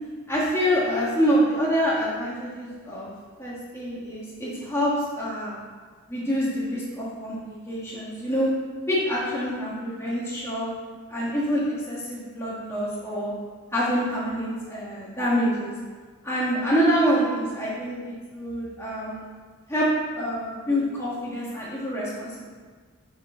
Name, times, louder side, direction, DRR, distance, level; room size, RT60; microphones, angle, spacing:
voice 1, 0.3-3.1 3.4-5.5 6.1-8.5 8.9-10.7 11.1-13.3 13.7-15.7 16.2-19.2 19.7-19.9 20.1-22.5, equal, 10° left, -7 dB, 1.4 m, -26 dB
5.7 x 5.1 x 3.6 m, 1.5 s
head